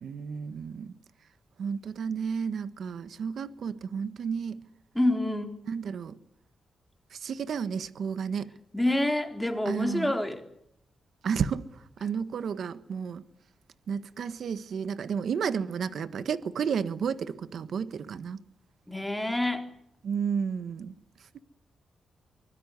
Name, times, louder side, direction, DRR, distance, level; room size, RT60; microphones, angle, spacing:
voice 1, 0.0-0.9 1.6-4.6 5.7-6.1 7.1-8.5 9.6-10.1 11.2-11.7 12.0-13.2 13.9-18.4 20.0-20.9, right 6 dB, 70° right, 1.4 m, -32 dB
voice 2, 4.9-5.6 8.7-10.4 18.9-19.6, left 1 dB, 5° left, 4.2 m, -27 dB
24.5 x 22.0 x 8.2 m
cardioid pair, 105°, 0 cm